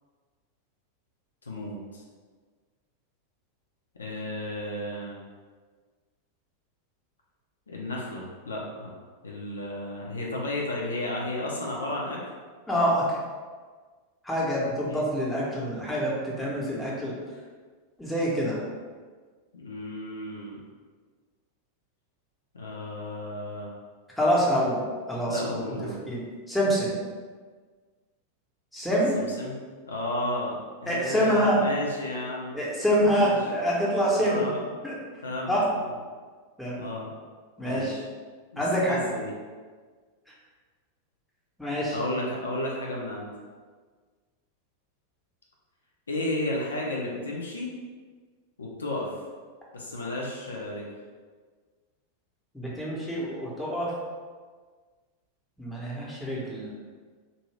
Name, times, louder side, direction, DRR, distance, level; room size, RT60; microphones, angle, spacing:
voice 1, 1.5-2.0 3.9-5.2 7.7-8.9 9.2-12.2 14.9-15.0 19.5-20.6 22.5-23.7 25.3-26.0 29.1-29.6 29.9-32.6 32.9-33.3 34.2-34.6 35.2-35.5 36.8-37.1 37.6-38.1 38.5-39.3 41.9-43.3 46.1-47.7 48.6-49.2 49.7-50.9, left 1 dB, 75° left, -3 dB, 0.5 m, -33 dB
voice 2, 12.7-13.2 14.2-17.1 18.0-18.6 24.2-24.8 25.1-25.4 26.1-26.2 26.5-27.0 28.7-29.2 30.9-31.6 32.5-34.5 34.8-34.9 35.5-35.6 36.6-36.8 37.6-38.0 38.6-39.0 41.6-42.0 52.5-53.9 55.6-56.7, equal, 5° left, -6 dB, 0.8 m, -26 dB
2.6 x 2.6 x 3.1 m, 1.5 s
figure-of-eight pair, 90°, 0 cm